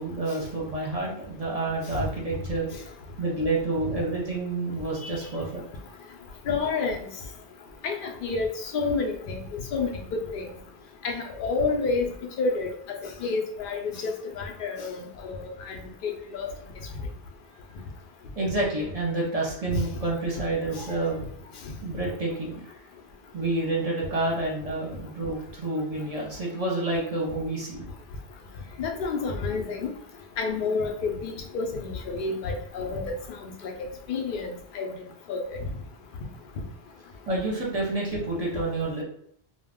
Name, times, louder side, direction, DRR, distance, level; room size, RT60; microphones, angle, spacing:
voice 1, 0.0-2.7 3.2-5.6 18.4-21.2 21.8-22.6 23.3-27.8 37.3-39.0, right 2 dB, 40° right, -3 dB, 0.8 m, -29 dB
voice 2, 6.5-7.0 7.8-9.4 9.7-9.9 10.3-10.4 11.0-12.1 12.4-12.7 13.2-15.8 16.0-16.5 20.8-20.9 28.8-29.9 30.4-33.1 33.4-33.5 34.1-34.9 35.3-35.6, left 4 dB, 60° left, 3 dB, 0.7 m, -29 dB
2.4 x 2.1 x 3.4 m, 0.66 s
omnidirectional pair, 1.1 m